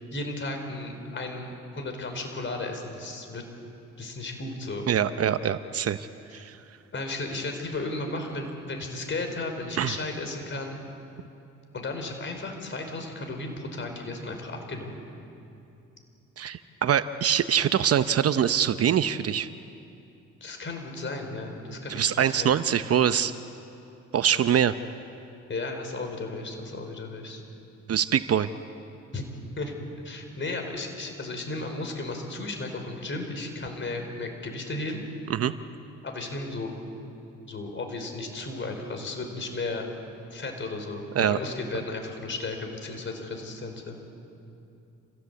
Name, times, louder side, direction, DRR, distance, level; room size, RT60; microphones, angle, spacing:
voice 1, 0.1-3.4 4.0-4.9 6.9-10.8 11.7-14.9 20.4-22.5 25.5-27.4 29.1-29.2 29.6-29.7 30.0-35.0 36.0-36.7 37.5-39.9 40.3-44.0, left 2 dB, 40° left, 4 dB, 4.7 m, -34 dB
voice 2, 4.9-6.1 6.3-6.5 9.8-9.9 16.4-19.5 21.9-23.3 24.1-24.7 27.9-28.5 35.3-35.5 41.1-41.4, right 9 dB, 50° right, 12 dB, 0.8 m, -24 dB
27.5 x 16.0 x 8.3 m, 2.8 s
cardioid pair, 90°, 30 cm